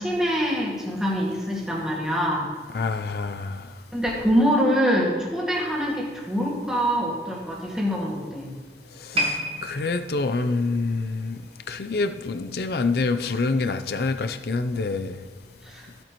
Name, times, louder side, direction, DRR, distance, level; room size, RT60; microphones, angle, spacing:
voice 1, 0.0-2.5 3.9-8.5 15.6-15.9, equal, 5° right, -4 dB, 1.9 m, -24 dB
voice 2, 2.7-3.7 9.0-9.4 9.6-11.4 11.7-15.2, left 3 dB, 60° left, 8 dB, 0.5 m, -26 dB
sound 1, 9.1-12.4 12.7-13.0 13.7-13.8, equal, 35° right, 1.2 m, -32 dB
15.5 x 8.8 x 3.0 m, 1.5 s
head